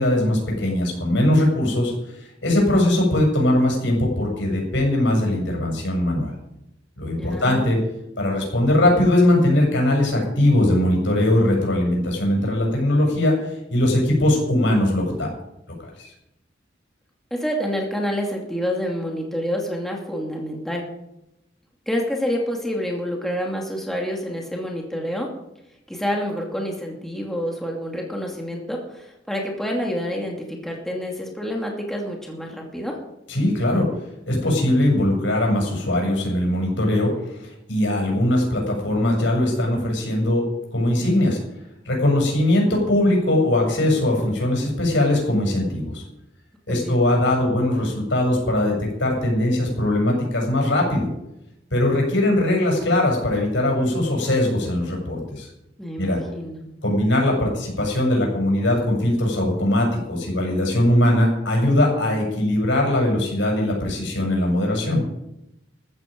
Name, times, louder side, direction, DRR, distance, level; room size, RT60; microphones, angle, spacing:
voice 1, 0.0-1.9 2.2-6.3 7.0-7.8 8.2-15.3 15.8-16.1 33.3-33.8 34.3-37.4 37.7-40.4 40.7-41.4 41.9-46.0 46.7-51.1 51.7-55.5 56.0-56.2 56.8-65.0, left 1 dB, 75° left, 0 dB, 7.2 m, -20 dB
voice 2, 7.2-7.6 17.3-20.9 21.9-25.3 25.9-33.0 46.7-47.0 55.8-56.6, equal, ahead, -1 dB, 2.5 m, -28 dB
15.0 x 14.0 x 5.3 m, 0.86 s
head